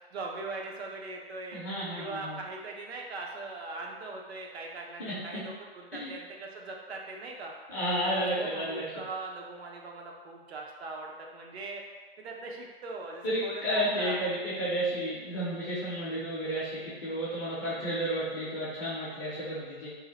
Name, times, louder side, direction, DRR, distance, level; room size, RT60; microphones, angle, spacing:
voice 1, 0.1-1.6 1.9-7.5 8.2-11.8 12.2-14.2, right 3 dB, 85° right, 0 dB, 0.7 m, -40 dB
voice 2, 1.5-2.4 5.0-5.1 5.9-6.1 7.7-8.8 13.2-19.9, equal, 20° left, -10 dB, 0.5 m, -32 dB
2.7 x 2.1 x 3.7 m, 1.3 s
hypercardioid pair, 155°, 31 cm